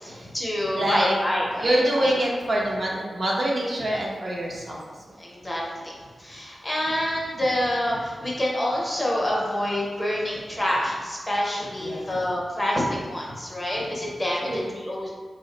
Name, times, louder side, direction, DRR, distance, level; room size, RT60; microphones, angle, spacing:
voice 1, 0.0-2.1 5.2-5.9 6.2-15.1, left 1 dB, 15° left, -4 dB, 0.6 m, -27 dB
voice 2, 0.7-1.2 1.6-4.8 11.8-12.1 14.3-14.7, right 1 dB, 40° right, -3 dB, 0.5 m, -25 dB
3.4 x 2.0 x 3.8 m, 1.4 s
wide cardioid pair, 160°, 0 cm